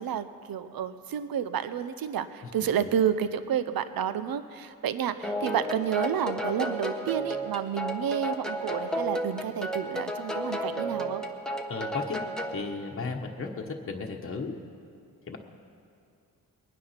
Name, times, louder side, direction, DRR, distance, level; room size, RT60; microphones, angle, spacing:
voice 1, 0.0-11.2, right 9 dB, 75° right, 12 dB, 0.7 m, -30 dB
sound 1, 5.2-12.6, equal, ahead, 1.1 m, -33 dB
voice 2, 11.7-12.3 12.5-14.6 15.3-15.4, left 4 dB, 35° left, 1 dB, 1.2 m, -35 dB
22.0 x 9.7 x 5.8 m, 2.7 s
wide cardioid pair, 125°, 36 cm